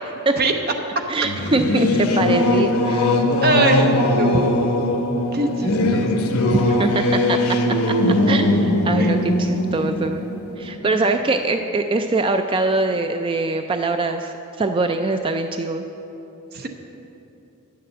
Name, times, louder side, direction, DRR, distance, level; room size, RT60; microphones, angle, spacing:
voice 1, 1.1-3.2 6.5-7.6 7.9-10.3 10.6-15.9, right 3 dB, 25° right, 6 dB, 0.3 m, -23 dB
Singing / Musical instrument, 1.2-11.3, left 1 dB, 85° left, 0.9 m, -20 dB
voice 2, 3.4-4.9 5.3-6.4 9.0-9.1 16.5-16.7, right 3 dB, 45° right, 4 dB, 0.8 m, -23 dB
10.0 x 6.7 x 7.7 m, 2.8 s
head